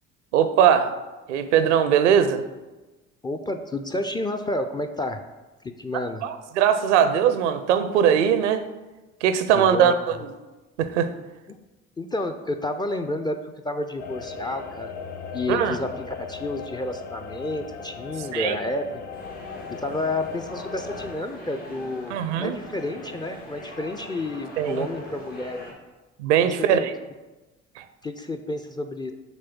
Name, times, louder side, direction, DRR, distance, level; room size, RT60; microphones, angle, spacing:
voice 1, 0.3-0.9 1.3-2.4 6.2-8.6 9.2-9.9 10.8-11.1 15.5-15.8 18.3-18.6 22.1-22.6 24.6-24.9 26.2-26.9 27.8-27.9, right 8 dB, 70° right, 10 dB, 0.6 m, -20 dB
voice 2, 3.2-5.2 5.6-6.2 9.5-10.2 11.5-11.6 12.0-14.9 15.3-19.0 19.7-25.8 26.7-26.9 28.0-29.1, left 2 dB, 10° left, 5 dB, 0.4 m, -30 dB
sound 1, 14.0-21.2, left 5 dB, 50° left, 1.1 m, -38 dB
sound 2, 19.1-25.7, left 1 dB, 80° left, 1.7 m, -42 dB
7.2 x 3.2 x 6.0 m, 1.2 s
figure-of-eight pair, 50°, 37 cm